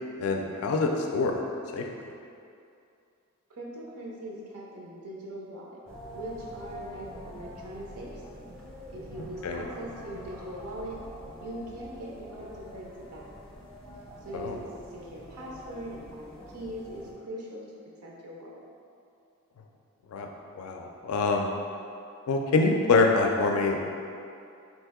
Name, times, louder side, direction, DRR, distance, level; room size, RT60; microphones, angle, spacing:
voice 1, 0.2-1.4 1.7-1.8 9.4-9.6 14.3-14.6 20.1-20.3 20.6-21.5 22.3-23.9, left 3 dB, 80° left, 2 dB, 0.3 m, -25 dB
voice 2, 3.5-5.8 6.1-8.2 8.9-11.0 11.4-13.3 14.2-16.2 16.5-17.6 18.0-18.6, right 1 dB, 85° right, -3 dB, 0.5 m, -41 dB
sound 1, 5.9-17.1, equal, 5° left, 0.4 m, -45 dB
3.1 x 2.7 x 3.5 m, 2.5 s
head